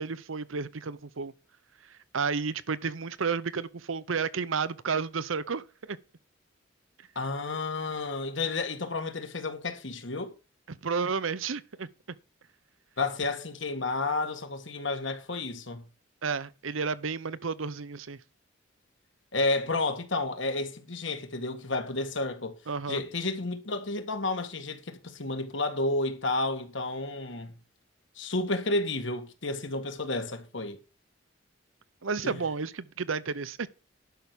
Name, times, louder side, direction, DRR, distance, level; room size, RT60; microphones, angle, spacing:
voice 1, 0.0-1.3 2.1-6.0 10.7-11.9 16.2-18.2 22.7-23.0 32.0-33.7, right 5 dB, 85° right, 0.8 m, -31 dB
voice 2, 7.2-10.3 13.0-15.8 19.3-22.6 22.9-27.6 28.2-30.8 32.2-32.4, left 2 dB, 70° left, 1.9 m, -31 dB
11.5 x 6.0 x 6.7 m
head